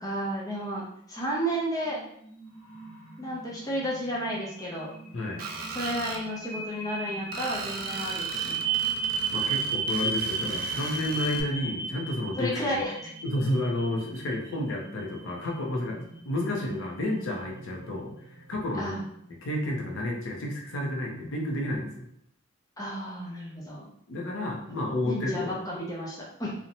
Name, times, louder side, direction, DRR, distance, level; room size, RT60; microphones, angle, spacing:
voice 1, 0.0-2.0 3.2-4.9 5.7-8.9 12.4-13.0 18.8-19.0 22.8-23.9 24.7-24.8 25.1-26.5, equal, 15° left, -5 dB, 0.5 m, -32 dB
sound 1, 1.8-19.9, right 4 dB, 90° right, 0.6 m, -35 dB
voice 2, 5.1-5.4 9.3-12.8 13.2-19.0 19.4-22.1 24.1-25.6, left 1 dB, 65° left, 0 dB, 0.5 m, -31 dB
Screech, 5.4-6.2 7.3-11.4, right 5 dB, 45° right, 0.3 m, -38 dB
sound 2, 17.4-20.0, right 2 dB, 20° right, 0.9 m, -53 dB
2.6 x 2.1 x 2.8 m, 0.72 s
head